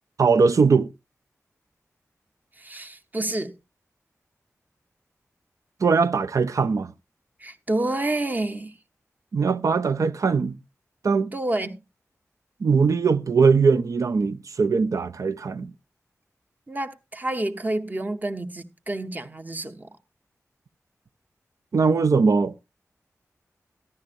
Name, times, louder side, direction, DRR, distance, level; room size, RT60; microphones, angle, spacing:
voice 1, 0.2-0.9 5.8-6.9 9.3-10.6 11.0-11.3 12.6-15.7 21.7-22.5, right 5 dB, 75° right, 0.5 m, -20 dB
voice 2, 2.6-3.6 7.4-8.8 11.3-11.8 16.7-19.9, right 2 dB, 30° right, 0.9 m, -29 dB
14.5 x 11.0 x 2.6 m
wide cardioid pair, 95°, 6 cm